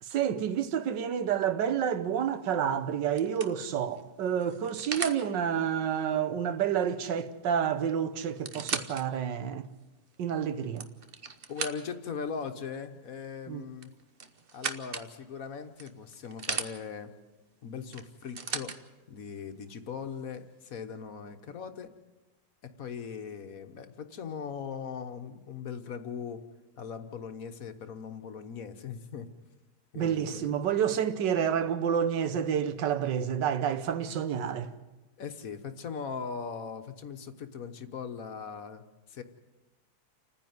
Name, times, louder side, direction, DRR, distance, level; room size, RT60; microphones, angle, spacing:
voice 1, 0.0-9.7 10.2-10.9 13.5-13.6 29.9-34.7, right 8 dB, 90° right, 1.7 m, -29 dB
sound 1, 2.3-2.6 3.2-5.2 7.3-7.4 7.6-7.7 8.2-9.0 9.6-9.7 10.5-12.1 13.8-15.1 15.8-16.7 17.9-18.8 19.7-19.8, right 5 dB, 40° right, 1.0 m, -37 dB
voice 2, 11.5-13.9 14.5-17.1 17.6-18.8 19.1-21.9 22.6-26.4 26.7-29.3 29.9-30.6 35.2-38.8 39.1-39.2, left 6 dB, 55° left, 1.4 m, -39 dB
29.0 x 10.0 x 9.4 m
omnidirectional pair, 1.9 m